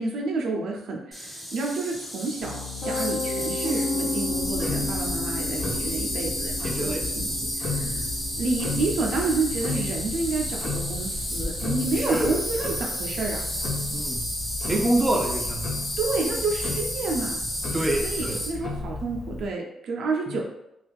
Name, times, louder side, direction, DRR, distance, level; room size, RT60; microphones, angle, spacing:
voice 1, 0.0-8.1 8.4-13.4 16.0-17.4 18.0-20.4, right 3 dB, 70° right, 0 dB, 0.5 m, -29 dB
Insect, 1.1-18.5, equal, 10° left, 1.4 m, -32 dB
Piano, 2.4-14.3, left 3 dB, 80° left, 1.1 m, -35 dB
Tick-tock, 4.3-19.5, left 3 dB, 50° left, 0.6 m, -34 dB
voice 2, 6.6-7.0 7.8-8.1 12.0-12.3 13.9-14.2 14.7-15.8 17.7-18.4 20.3-20.4, right 1 dB, 20° right, -1 dB, 0.5 m, -27 dB
2.4 x 2.3 x 3.4 m, 0.86 s
cardioid pair, 100°, 0 cm